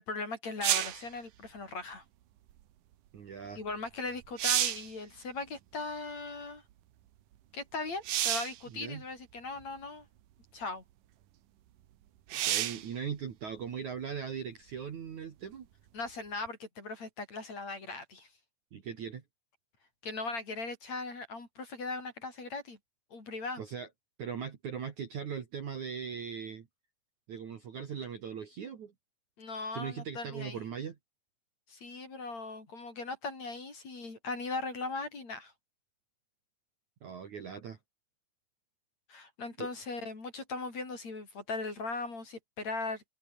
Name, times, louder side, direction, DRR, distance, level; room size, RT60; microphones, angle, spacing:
voice 1, 0.0-2.0 3.6-6.6 7.5-10.1 10.5-10.8 15.9-18.3 20.0-22.8 23.1-23.6 29.4-30.6 31.7-35.5 39.1-43.0, left 3 dB, 35° left, 6.7 m, -39 dB
sound 1, 0.6-1.1 3.7-3.8 4.2-4.9 8.0-8.6 9.6-9.7 12.3-12.9 16.5-16.6, right 12 dB, 65° right, 2.3 m, -30 dB
voice 2, 3.1-3.6 8.7-9.0 12.3-15.7 18.7-19.2 23.6-23.9 24.2-26.7 27.3-28.9 29.7-31.0 37.0-37.8 39.6-39.7, right 7 dB, 50° right, 2.9 m, -39 dB
omnidirectional pair, 5.3 m